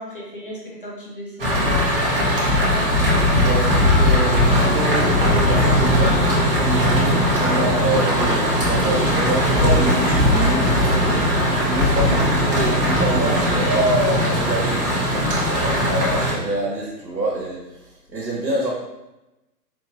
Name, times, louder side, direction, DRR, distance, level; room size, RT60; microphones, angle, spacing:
voice 1, 0.0-2.9 12.0-12.3, equal, 35° left, -5 dB, 0.6 m, -34 dB
sound 1, 1.4-16.3, equal, 35° right, 0.9 m, -19 dB
voice 2, 3.3-11.2 11.7-18.7, right 1 dB, 75° right, -4 dB, 1.2 m, -26 dB
4.3 x 2.8 x 2.9 m, 0.96 s
figure-of-eight pair, 135°, 50 cm